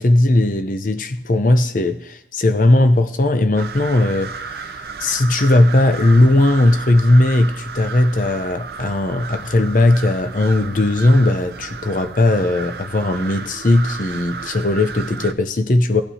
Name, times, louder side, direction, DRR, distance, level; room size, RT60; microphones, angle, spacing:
voice 1, 0.0-16.0, left 2 dB, 50° left, 0.6 m, -17 dB
sound 1, 3.6-15.3, right 5 dB, 60° right, 0.5 m, -33 dB
17.5 x 8.9 x 2.8 m
head